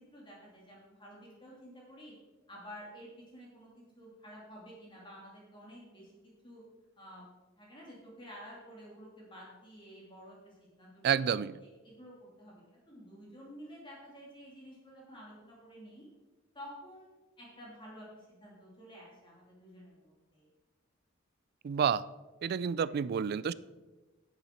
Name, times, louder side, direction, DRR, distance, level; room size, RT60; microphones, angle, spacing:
voice 1, 0.1-2.1 2.5-6.6 7.0-7.3 7.6-11.3 11.6-16.0 16.5-20.5, equal, 25° left, 2.5 m, -51 dB
voice 2, 11.0-11.6 21.6-22.0 22.4-23.5, right 7 dB, 50° right, 0.3 m, -29 dB
10.0 x 8.3 x 4.4 m
head